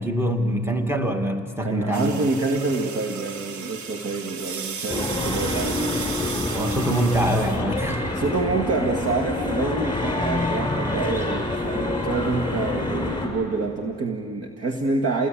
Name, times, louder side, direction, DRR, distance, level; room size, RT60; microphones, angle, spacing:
voice 1, 0.0-2.1 6.5-8.1, right 1 dB, 10° right, 4 dB, 2.2 m, -24 dB
voice 2, 1.6-5.8 8.1-15.3, right 3 dB, 50° right, 3 dB, 1.9 m, -27 dB
sound 1, 1.9-7.6, right 6 dB, 70° right, 1.5 m, -35 dB
sound 2, 4.9-13.3, left 2 dB, 15° left, 7.4 m, -27 dB
29.5 x 19.5 x 8.8 m, 2.3 s
cardioid pair, 90°, 30 cm